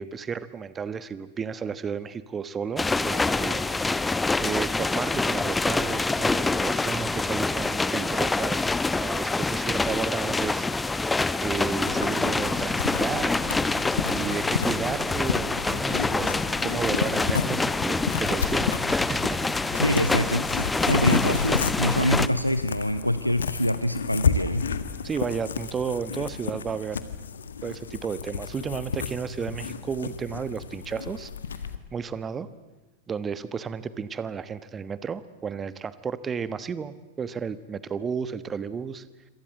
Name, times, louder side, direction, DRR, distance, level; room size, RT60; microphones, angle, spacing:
voice 1, 0.0-4.1 4.4-10.7 11.4-13.7 14.1-19.8 25.0-27.0 27.6-31.3 31.9-32.5 33.1-39.0, right 6 dB, 20° right, 15 dB, 1.2 m, -33 dB
sound 1, 2.8-22.3, left 3 dB, 10° left, 0.9 m, -26 dB
sound 2, 11.9-31.8, left 6 dB, 70° left, 1.6 m, -32 dB
voice 2, 19.7-24.7, equal, 90° left, 12 dB, 0.9 m, -25 dB
27.0 x 25.5 x 7.9 m, 1.1 s
figure-of-eight pair, 90°, 0 cm